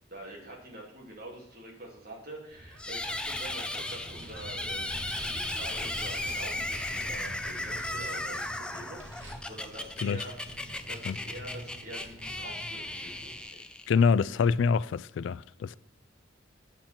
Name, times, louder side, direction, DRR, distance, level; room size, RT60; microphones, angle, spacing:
voice 1, 0.1-10.3 10.9-13.6, right 1 dB, 55° right, 2.8 m, -45 dB
Vehicle, 2.5-13.4, equal, 80° right, 2.0 m, -45 dB
sound 1, 2.8-14.1, left 1 dB, 5° left, 0.4 m, -36 dB
voice 2, 13.9-15.8, left 5 dB, 75° left, 0.3 m, -25 dB
9.5 x 7.3 x 4.4 m
head